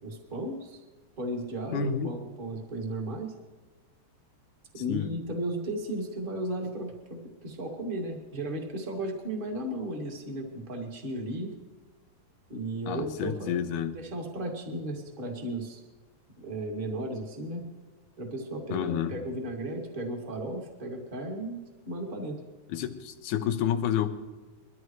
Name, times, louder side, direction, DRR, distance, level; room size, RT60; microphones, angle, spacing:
voice 1, 0.0-0.8 1.2-3.3 4.7-11.5 12.5-13.6 13.9-15.8 16.4-17.6 18.2-21.6 21.9-22.4, right 1 dB, 20° right, 0 dB, 1.8 m, -35 dB
voice 2, 1.7-2.1 4.9-5.1 12.9-14.0 18.7-19.1 22.7-24.1, left 9 dB, 75° left, 7 dB, 2.4 m, -29 dB
22.5 x 14.0 x 3.2 m, 1.2 s
omnidirectional pair, 3.8 m